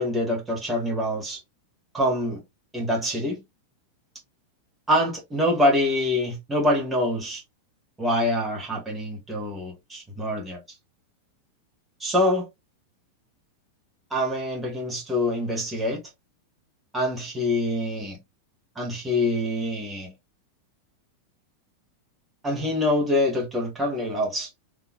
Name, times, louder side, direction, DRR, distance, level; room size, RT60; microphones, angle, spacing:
voice 1, 0.0-1.4 1.9-2.4 2.7-3.4 4.9-7.4 8.0-10.6 12.0-12.5 14.1-16.0 16.9-18.2 18.7-20.1 22.4-24.5, left 1 dB, 10° right, 1.7 m, -25 dB
3.8 x 3.3 x 2.4 m
figure-of-eight pair, 90°, 0 cm